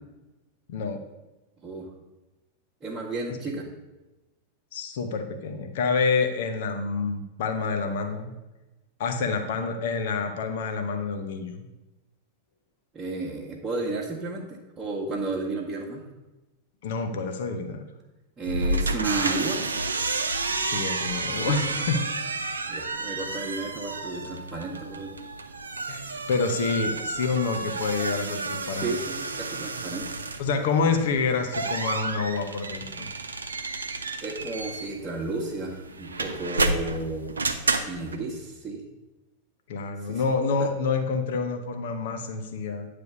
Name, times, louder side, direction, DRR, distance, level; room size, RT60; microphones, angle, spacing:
voice 1, 0.7-1.0 3.3-3.4 4.7-8.3 9.0-11.7 16.8-17.8 20.6-22.0 25.9-28.9 30.4-33.1 39.7-42.9, left 4 dB, 55° left, 5 dB, 0.8 m, -28 dB
voice 2, 2.8-3.7 12.9-16.1 18.4-19.6 21.3-21.6 22.7-25.1 28.6-30.1 34.2-37.3 37.9-38.8 40.0-40.2 40.6-40.7, right 3 dB, 20° right, -6 dB, 1.2 m, -32 dB
sound 1, 18.4-38.2, right 3 dB, 75° right, 0.6 m, -31 dB
9.2 x 3.4 x 6.8 m, 1.1 s
figure-of-eight pair, 90°, 0 cm